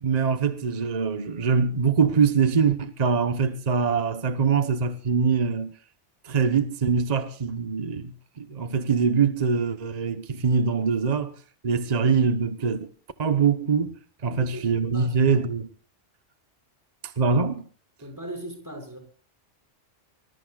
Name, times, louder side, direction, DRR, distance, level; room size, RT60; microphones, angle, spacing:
voice 1, 0.0-5.7 6.2-11.3 11.6-12.9 13.2-15.7 17.0-17.6, right 5 dB, 35° right, 1.1 m, -23 dB
voice 2, 14.2-15.4 18.0-19.0, right 1 dB, 15° right, 6.4 m, -39 dB
24.5 x 20.5 x 2.4 m
omnidirectional pair, 1.2 m